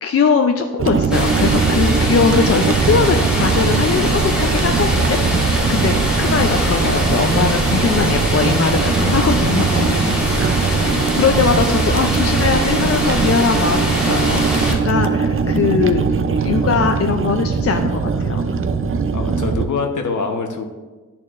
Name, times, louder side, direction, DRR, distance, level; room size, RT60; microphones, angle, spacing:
voice 1, 0.0-9.9 10.6-10.7 11.2-16.0 16.4-18.4, left 5 dB, 45° left, 5 dB, 0.4 m, -20 dB
sound 1, 0.8-19.7, right 5 dB, 40° right, 0.4 m, -20 dB
sound 2, 1.1-14.7, equal, ahead, 1.8 m, -22 dB
voice 2, 9.7-10.5 19.1-20.7, left 4 dB, 60° left, 4 dB, 0.9 m, -25 dB
12.5 x 4.3 x 2.5 m, 1.3 s
wide cardioid pair, 100°, 34 cm